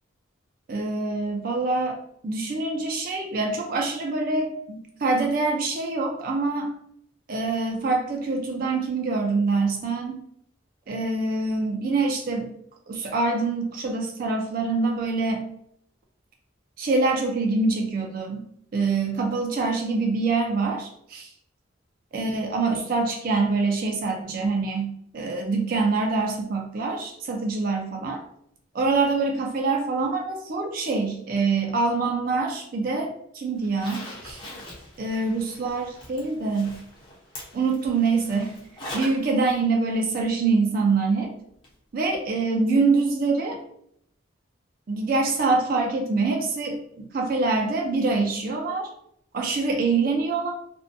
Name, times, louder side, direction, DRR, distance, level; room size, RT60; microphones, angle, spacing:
voice 1, 0.7-2.0 2.2-6.7 7.3-10.2 10.9-12.5 12.9-15.4 16.8-18.4 18.7-21.3 22.1-28.2 28.7-34.4 35.0-36.8 37.5-38.5 38.9-41.3 41.9-43.6 44.9-48.9 49.3-50.5, right 3 dB, 45° right, 2 dB, 0.3 m, -25 dB
Zipper (clothing), 33.6-39.3 39.6-39.7 41.6-41.7 42.1-42.2, left 1 dB, 25° left, 0.6 m, -41 dB
2.5 x 2.1 x 2.5 m, 0.70 s
head